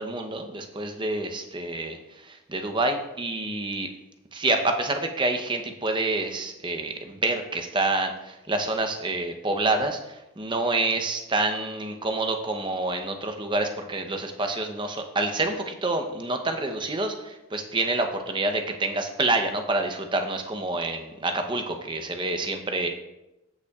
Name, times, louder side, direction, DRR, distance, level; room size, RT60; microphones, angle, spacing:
voice 1, 0.0-2.0 2.2-3.9 4.3-22.9, right 2 dB, 20° right, 5 dB, 0.7 m, -27 dB
14.5 x 5.6 x 2.4 m, 0.94 s
head